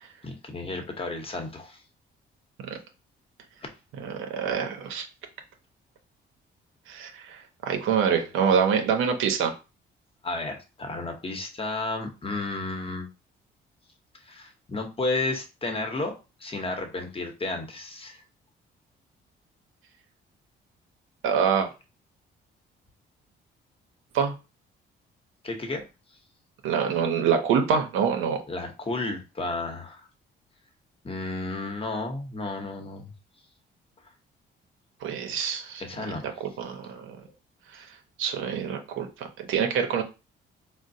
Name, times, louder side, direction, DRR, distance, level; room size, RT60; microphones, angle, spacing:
voice 1, 0.2-1.8 10.2-13.1 14.2-16.1 16.4-18.2 25.4-25.8 28.5-30.1 31.0-33.1 35.8-36.4 36.7-36.8 37.2-37.3, left 2 dB, 30° left, 4 dB, 0.8 m, -32 dB
voice 2, 4.0-5.1 6.9-9.6 21.2-21.7 24.1-24.3 26.6-28.4 35.0-36.1 36.4-37.2 37.7-40.0, right 7 dB, 85° right, 4 dB, 0.6 m, -26 dB
3.8 x 2.0 x 2.6 m, 0.29 s
cardioid pair, 90°, 20 cm